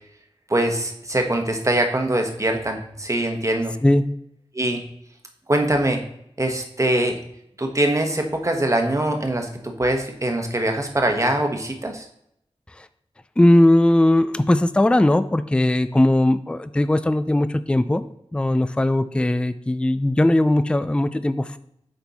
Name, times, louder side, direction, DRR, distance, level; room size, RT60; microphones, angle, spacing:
voice 1, 0.5-3.7 4.5-4.8 5.5-6.0 6.4-7.2 7.6-9.5 9.8-12.0, right 1 dB, 30° right, 3 dB, 1.1 m, -22 dB
voice 2, 13.4-18.0 18.3-21.6, left 1 dB, 10° left, 12 dB, 0.4 m, -19 dB
7.9 x 4.4 x 4.2 m, 0.75 s
wide cardioid pair, 55°, 11 cm